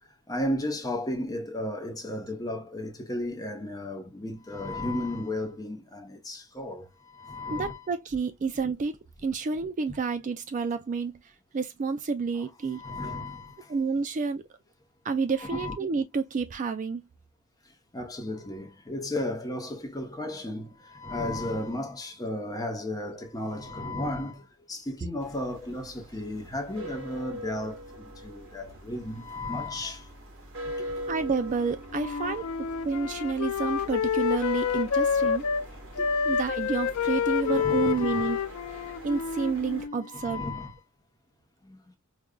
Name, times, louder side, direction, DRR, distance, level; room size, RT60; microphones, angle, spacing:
voice 1, 0.3-7.9 12.7-13.7 15.4-15.8 17.9-30.1 30.8-30.9 32.0-32.5 36.0-36.1 37.4-38.2 40.0-40.8 41.6-41.8, left 1 dB, 15° left, 0.8 m, -34 dB
voice 2, 7.5-11.2 11.5-12.8 13.7-14.4 15.0-17.0 31.1-32.5 32.8-35.5 36.3-38.4 38.7-40.4, right 5 dB, 35° right, 0.3 m, -29 dB
sound 1, 25.2-39.9, equal, 60° right, 1.6 m, -43 dB
Wind instrument woodwind instrument, 31.9-35.7 36.0-40.1, left 7 dB, 70° left, 0.3 m, -28 dB
4.9 x 2.3 x 2.2 m
head